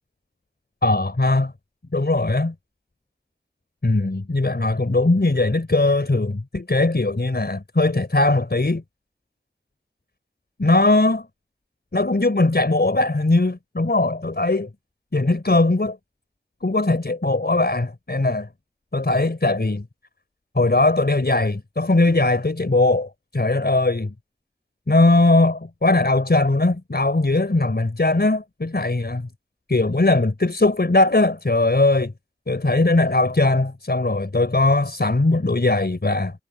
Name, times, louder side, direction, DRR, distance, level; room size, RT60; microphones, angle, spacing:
voice 1, 0.8-1.5 1.9-2.5 3.8-8.8 10.6-11.3 11.9-14.7 15.1-16.0 16.6-18.5 18.9-19.8 20.5-24.1 24.9-29.3 29.7-32.1 32.5-36.3, left 2 dB, 65° left, 4.5 m, -20 dB
wide cardioid pair, 50°, 18 cm